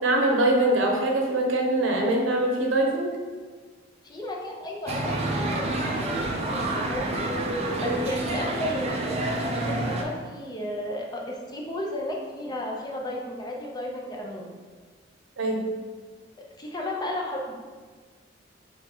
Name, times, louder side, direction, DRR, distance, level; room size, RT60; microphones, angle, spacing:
voice 1, 0.0-3.1 7.8-8.0 15.4-15.6, right 1 dB, 80° right, 1 dB, 0.7 m, -23 dB
voice 2, 4.0-7.3 7.8-14.5 16.6-17.5, left 1 dB, 20° left, -1 dB, 0.5 m, -34 dB
sound 1, 4.9-10.0, right 2 dB, 35° right, 0.5 m, -28 dB
3.6 x 3.2 x 3.5 m, 1.5 s
head